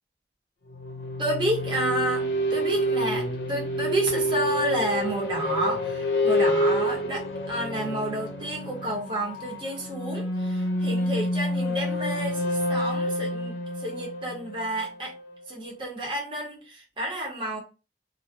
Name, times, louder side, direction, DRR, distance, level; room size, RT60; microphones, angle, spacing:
sound 1, 0.7-15.3, equal, 70° left, 0.5 m, -28 dB
voice 1, 1.2-15.1 15.5-17.6, right 1 dB, 30° right, 0.7 m, -30 dB
2.4 x 2.1 x 2.5 m
head